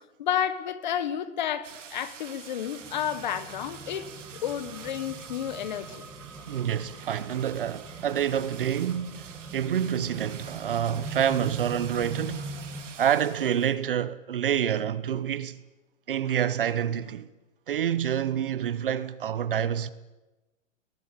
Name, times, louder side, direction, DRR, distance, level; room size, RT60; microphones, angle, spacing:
voice 1, 0.2-4.1 4.4-6.0, left 9 dB, 35° left, 1.4 m, -31 dB
sound 1, 1.6-13.8 14.1-14.2, right 7 dB, 65° right, 3.2 m, -46 dB
sound 2, 2.8-12.8, right 2 dB, 5° right, 1.5 m, -42 dB
voice 2, 6.5-12.5 13.0-15.6 16.1-17.3 17.7-19.9, right 9 dB, 45° right, 0.9 m, -27 dB
22.0 x 20.5 x 9.0 m
hypercardioid pair, 175°, 39 cm